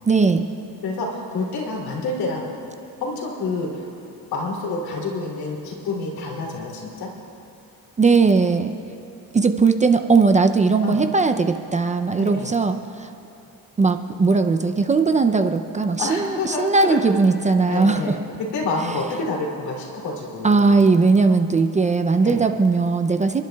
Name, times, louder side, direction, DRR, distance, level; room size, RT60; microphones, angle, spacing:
voice 1, 0.1-0.5 8.0-8.7 9.3-13.1 13.8-18.2 20.4-23.4, right 4 dB, 20° right, 7 dB, 0.4 m, -18 dB
voice 2, 0.8-2.5 3.0-3.9 4.3-7.1 10.8-11.0 12.2-12.6 16.0-17.0 17.7-18.2 18.5-20.8 22.2-22.4, left 3 dB, 80° left, -2 dB, 2.9 m, -28 dB
29.5 x 11.5 x 2.3 m, 2.8 s
cardioid pair, 135°, 36 cm